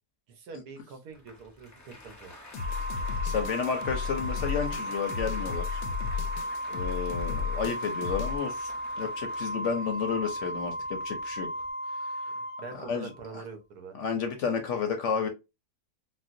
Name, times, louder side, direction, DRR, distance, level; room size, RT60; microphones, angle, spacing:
voice 1, 0.3-2.3 12.6-13.9, right 4 dB, 80° right, 1.4 m, -44 dB
Applause, 1.1-11.7, left 1 dB, 25° left, 0.3 m, -49 dB
sound 1, 2.5-8.4, left 6 dB, 90° left, 1.2 m, -34 dB
Organ, 2.6-13.3, equal, 35° right, 1.3 m, -35 dB
voice 2, 3.2-5.8 6.7-8.7 9.0-11.5 12.0-12.3 12.7-13.4 13.9-15.3, left 6 dB, 65° left, 0.8 m, -31 dB
4.3 x 2.0 x 2.5 m
omnidirectional pair, 1.6 m